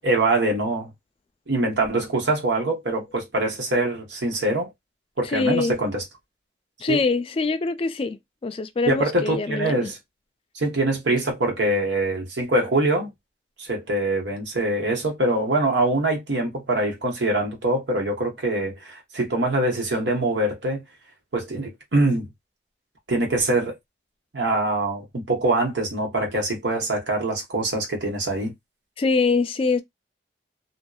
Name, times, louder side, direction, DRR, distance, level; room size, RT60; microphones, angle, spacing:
voice 1, 0.0-0.9 1.5-4.7 5.2-6.0 6.9-7.0 8.9-10.0 10.5-13.1 13.6-20.8 21.3-22.3 23.1-23.8 24.3-28.5, right 2 dB, 90° right, 1.0 m, -24 dB
voice 2, 5.2-5.8 6.8-9.9 29.0-29.8, left 4 dB, 30° left, 0.3 m, -24 dB
2.6 x 2.1 x 2.3 m
head